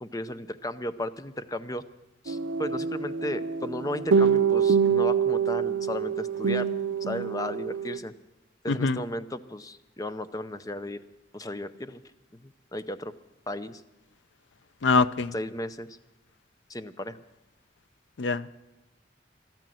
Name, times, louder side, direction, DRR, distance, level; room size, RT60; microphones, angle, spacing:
voice 1, 0.0-1.8 2.2-6.7 7.0-8.1 8.6-11.0 11.3-12.0 12.4-13.1 13.5-13.8 15.3-15.9 16.7-17.2, left 1 dB, 20° left, 0.6 m, -35 dB
sound 1, 2.3-8.0, right 6 dB, 90° right, 0.6 m, -25 dB
voice 2, 8.7-9.0 14.8-15.3 18.2-18.5, left 4 dB, 80° left, 0.5 m, -24 dB
13.5 x 13.0 x 7.7 m
head